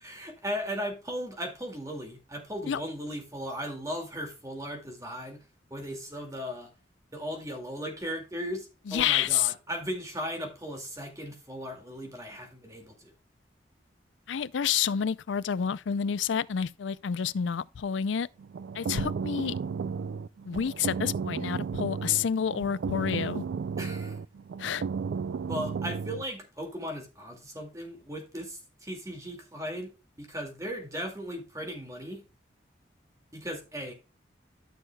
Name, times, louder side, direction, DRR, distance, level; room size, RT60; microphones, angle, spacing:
voice 1, 0.0-5.4 5.7-6.7 7.1-13.1 23.8-24.2 25.4-29.9 30.2-32.2 33.3-33.9, equal, 15° right, 2.2 m, -37 dB
voice 2, 8.9-9.5 14.3-18.3 18.7-19.5 20.4-23.4 24.6-24.8, left 8 dB, 90° left, 0.4 m, -29 dB
sound 1, 18.4-26.2, right 5 dB, 75° right, 0.3 m, -33 dB
13.0 x 6.4 x 2.2 m
head